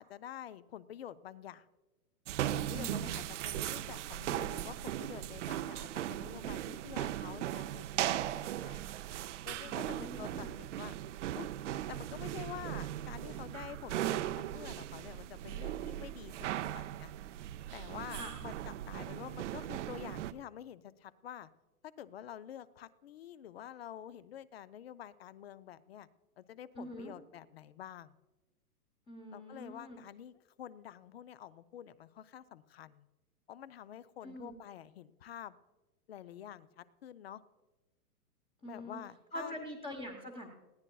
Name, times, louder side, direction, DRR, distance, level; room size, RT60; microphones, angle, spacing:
voice 1, 0.0-1.7 2.4-8.9 9.4-11.0 11.4-11.5 11.9-17.1 17.7-21.5 21.8-26.1 26.4-28.1 29.3-33.1 33.5-35.5 36.1-37.4 38.6-39.5, left 10 dB, 45° left, 17 dB, 0.4 m, -48 dB
sound 1, 2.3-20.3, right 13 dB, 50° right, 0.5 m, -38 dB
voice 2, 2.7-3.1 6.2-6.4 9.6-10.6 18.1-18.4 26.7-27.1 29.1-30.0 34.2-34.5 38.6-39.0 39.3-40.5, left 1 dB, 10° left, 2 dB, 0.9 m, -45 dB
20.0 x 15.0 x 2.3 m, 1.2 s
hypercardioid pair, 140°, 47 cm